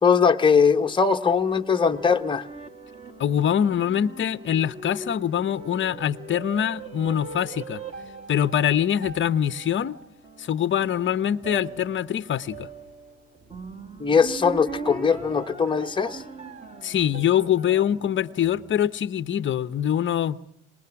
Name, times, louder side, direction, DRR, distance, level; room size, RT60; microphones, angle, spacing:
voice 1, 0.0-2.4 14.0-16.2, left 6 dB, 15° left, 1.2 m, -20 dB
sound 1, 0.6-19.1, right 2 dB, 20° right, 2.6 m, -40 dB
voice 2, 3.2-7.8 8.3-10.0 10.4-12.7 16.8-20.4, left 9 dB, 30° left, 1.0 m, -24 dB
26.5 x 20.5 x 5.9 m
supercardioid pair, 105°, 37 cm